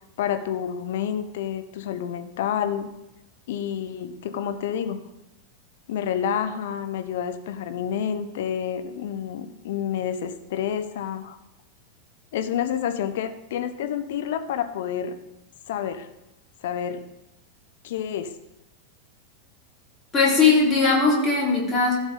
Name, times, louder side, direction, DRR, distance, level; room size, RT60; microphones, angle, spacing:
voice 1, 0.2-2.9 3.5-5.0 5.9-11.4 12.3-15.2 15.7-16.1 16.6-17.1 17.8-18.4, left 9 dB, 55° left, 8 dB, 0.9 m, -29 dB
voice 2, 20.1-21.9, left 4 dB, 20° left, -4 dB, 4.1 m, -19 dB
15.5 x 6.2 x 3.9 m, 0.93 s
figure-of-eight pair, 90°, 0 cm